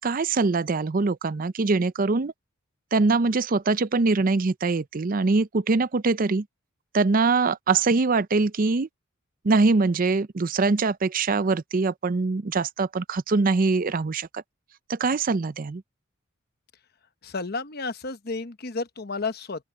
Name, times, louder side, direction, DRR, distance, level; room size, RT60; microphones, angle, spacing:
voice 1, 0.0-2.3 2.9-6.5 6.9-8.9 9.4-14.4 14.9-15.8, right 3 dB, 40° right, 0.5 m, -23 dB
voice 2, 17.2-19.6, left 3 dB, 50° left, 1.0 m, -32 dB
open air
head